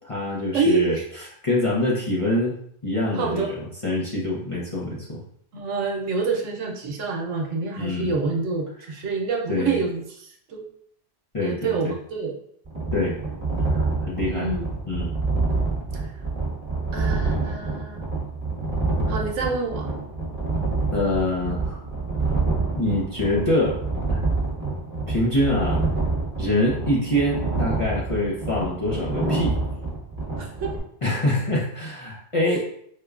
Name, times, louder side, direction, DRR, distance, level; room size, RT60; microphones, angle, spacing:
voice 1, 0.0-1.0 1.4-2.6 2.8-3.6 3.8-5.2 7.8-8.1 9.5-9.8 11.3-11.9 12.9-13.2 13.6-14.5 14.9-15.1 20.9-21.8 22.8-23.8 24.1-24.2 25.1-25.8 26.4-29.6 31.0-32.6, left 1 dB, 40° left, -6 dB, 0.5 m, -25 dB
voice 2, 0.5-1.1 3.1-3.5 5.5-10.6 11.4-12.4 14.3-14.7 15.9-16.1 16.9-18.0 19.1-19.9 30.4-30.7 32.4-32.6, right 3 dB, 80° right, 1 dB, 1.0 m, -27 dB
sound 1, 12.7-30.8, right 3 dB, 10° right, 1.0 m, -27 dB
4.9 x 2.2 x 2.3 m, 0.67 s
omnidirectional pair, 1.2 m